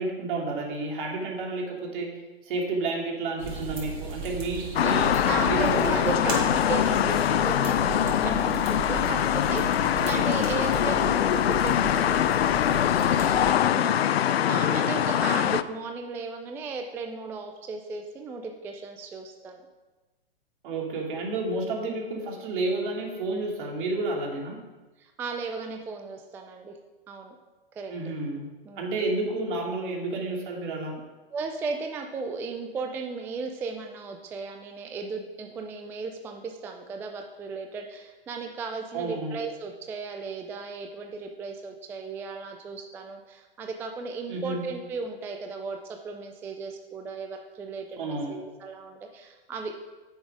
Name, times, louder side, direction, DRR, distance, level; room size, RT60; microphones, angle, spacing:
voice 1, 0.0-2.1 2.4-6.4 10.0-10.4 14.4-15.1 20.6-24.6 27.9-28.5 28.8-31.0 38.9-39.4 44.3-44.6 48.0-48.5, right 2 dB, 55° right, -1 dB, 2.7 m, -31 dB
sound 1, 3.4-13.5, right 3 dB, 85° right, 3.2 m, -36 dB
sound 2, 4.8-15.6, left 10 dB, 75° left, 0.5 m, -23 dB
voice 2, 5.2-9.2 9.5-11.8 12.1-14.1 14.5-19.6 25.0-26.7 27.1-27.3 27.8-28.1 28.7-28.9 31.3-49.8, right 4 dB, 10° right, 4 dB, 0.3 m, -36 dB
9.8 x 6.3 x 5.0 m, 1.2 s
hypercardioid pair, 120°, 31 cm